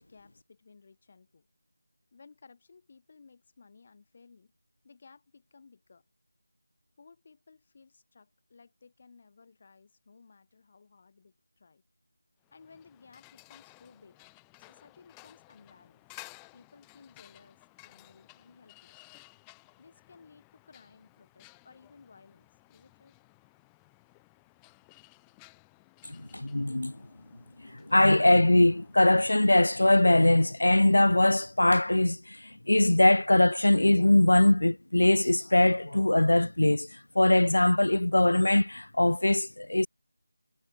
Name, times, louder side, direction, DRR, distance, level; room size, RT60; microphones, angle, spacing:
voice 1, 0.0-1.5 2.1-4.5 4.8-6.0 7.0-11.8 12.5-14.2 14.6-16.1 16.5-19.0 19.8-23.2, left 4 dB, 25° left, 5.2 m, -57 dB
sound 1, 12.4-29.9, left 37 dB, 5° left, 2.9 m, -56 dB
voice 2, 26.1-26.9 27.6-39.9, left 1 dB, 90° left, 0.5 m, -22 dB
figure-of-eight pair, 175°, 0 cm